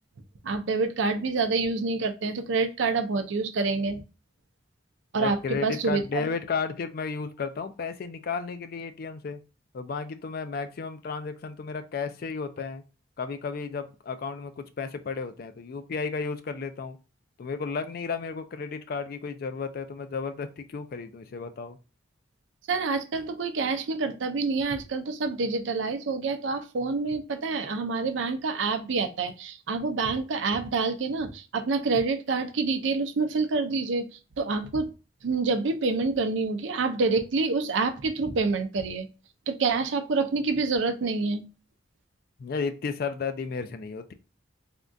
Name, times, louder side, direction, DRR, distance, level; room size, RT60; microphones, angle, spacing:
voice 1, 0.4-4.0 5.1-6.3 22.7-34.1 34.4-34.9 35.2-39.1 39.5-41.5, right 4 dB, 75° right, 7 dB, 0.5 m, -27 dB
voice 2, 5.2-9.4 9.7-12.8 13.2-17.0 17.4-21.8 42.4-44.1, left 5 dB, 50° left, 10 dB, 0.3 m, -33 dB
3.5 x 2.3 x 2.5 m, 0.31 s
head